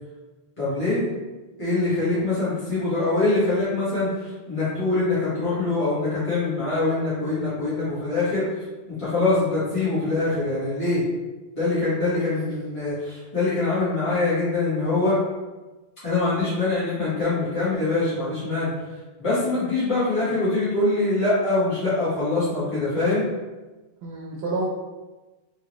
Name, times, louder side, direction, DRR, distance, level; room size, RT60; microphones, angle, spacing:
voice 1, 0.6-1.0 1.6-8.4 9.0-11.0 11.5-15.2 16.0-18.7 19.2-23.3, left 2 dB, 30° left, -12 dB, 1.5 m, -24 dB
voice 2, 12.0-12.4 24.0-24.7, right 2 dB, 80° right, -3 dB, 0.9 m, -30 dB
3.6 x 3.0 x 3.0 m, 1.2 s
omnidirectional pair, 1.0 m